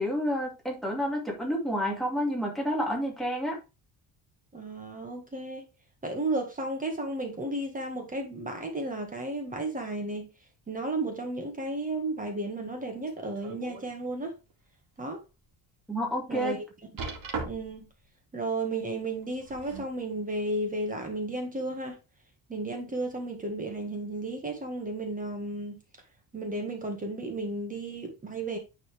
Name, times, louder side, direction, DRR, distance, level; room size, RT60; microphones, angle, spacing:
voice 1, 0.0-3.6 15.9-16.6, equal, ahead, 2.2 m, -29 dB
voice 2, 4.5-5.6 6.0-10.3 10.7-14.3 15.0-15.2 16.3-16.6 17.4-17.9 18.3-22.0 22.5-25.8 26.3-28.6, right 2 dB, 20° right, 1.6 m, -33 dB
sound 1, 13.1-13.9 14.4-14.5 15.1-15.2 17.0-17.9 19.2-20.0 20.9-21.0, right 4 dB, 50° right, 2.3 m, -38 dB
9.8 x 4.2 x 3.4 m
cardioid pair, 180°, 44 cm